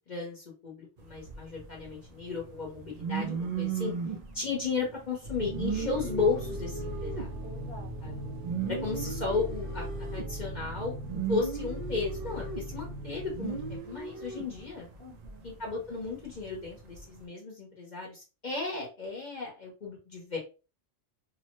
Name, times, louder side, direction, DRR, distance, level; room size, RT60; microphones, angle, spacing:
voice 1, 0.1-3.9 4.3-7.4 8.0-8.3 8.7-10.9 11.3-14.9 15.4-20.4, left 4 dB, 45° left, -3 dB, 0.8 m, -34 dB
sound 1, 1.0-15.5 16.0-17.2, right 5 dB, 65° right, 0.4 m, -37 dB
voice 2, 4.1-4.5 7.4-8.1 15.0-15.5, equal, 5° left, -3 dB, 0.7 m, -50 dB
sound 2, 5.2-13.8, right 1 dB, 80° right, 1.1 m, -39 dB
2.8 x 2.1 x 2.9 m, 0.32 s
omnidirectional pair, 1.2 m